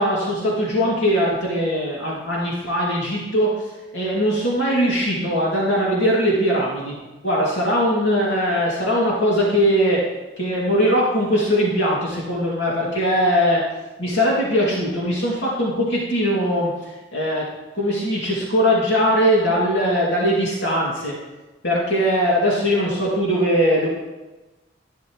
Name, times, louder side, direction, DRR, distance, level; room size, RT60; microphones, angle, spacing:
voice 1, 0.0-3.5 3.9-6.9 7.2-10.0 10.4-13.6 14.0-16.7 17.1-17.4 17.7-21.1 21.6-23.9, equal, 75° left, -5 dB, 2.6 m, -20 dB
13.0 x 11.5 x 3.2 m, 1.1 s
head